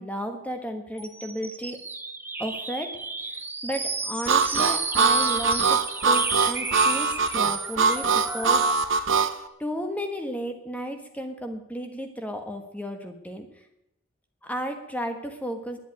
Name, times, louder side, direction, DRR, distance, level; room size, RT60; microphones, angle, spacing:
voice 1, 0.0-1.8 2.4-3.0 3.2-5.8 6.0-8.7 9.6-13.6 14.4-15.8, equal, 5° left, 5 dB, 1.3 m, -33 dB
sound 1, 1.0-9.0, right 3 dB, 10° right, 0.6 m, -32 dB
Harmonica, 4.3-9.3, right 5 dB, 70° right, 0.8 m, -22 dB
11.0 x 7.7 x 9.4 m, 0.83 s
head